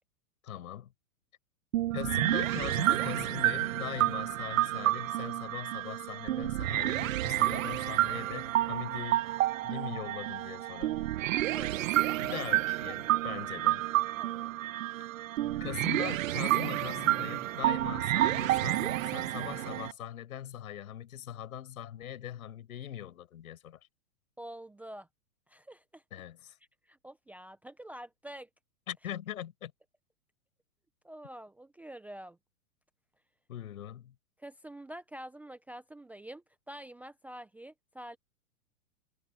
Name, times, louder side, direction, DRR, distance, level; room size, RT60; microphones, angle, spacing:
voice 1, 0.4-0.9 1.9-9.2 9.6-10.9 12.2-13.8 15.6-23.8 26.1-26.5 28.9-29.7 33.5-34.1, left 11 dB, 75° left, 6.0 m, -41 dB
sound 1, 1.7-19.9, right 15 dB, 65° right, 1.0 m, -30 dB
voice 2, 11.3-12.5 12.9-13.4 14.2-14.5 24.4-25.1 25.5-26.0 26.9-28.5 31.0-32.4 34.4-38.2, right 1 dB, 5° right, 0.6 m, -47 dB
hypercardioid pair, 140°, 43 cm